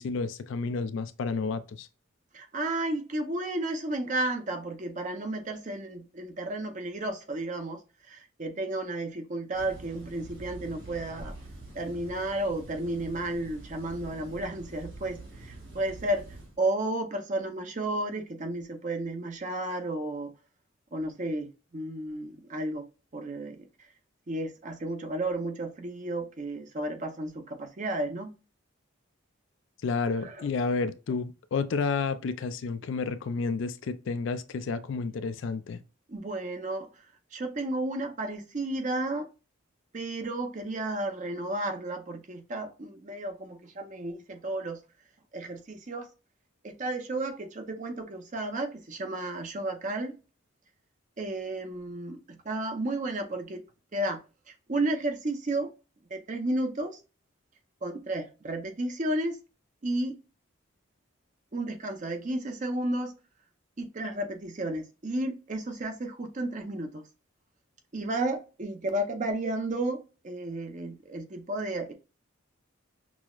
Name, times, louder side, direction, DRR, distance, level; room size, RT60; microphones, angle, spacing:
voice 1, 0.0-1.9 29.8-35.8, left 4 dB, 65° left, 0.4 m, -31 dB
voice 2, 2.3-11.4 11.7-16.3 16.6-20.3 20.9-22.9 23.1-23.9 24.3-28.3 30.2-30.5 36.1-37.1 37.3-39.3 39.9-44.8 45.3-46.1 46.6-50.1 51.2-53.6 53.9-54.2 54.5-55.7 56.1-57.0 57.8-59.4 59.8-60.2 61.5-63.2 63.8-67.0 67.9-71.9, right 1 dB, 35° right, 0.6 m, -32 dB
sound 1, 9.5-16.6, right 2 dB, 65° right, 1.8 m, -45 dB
6.0 x 2.0 x 2.3 m
head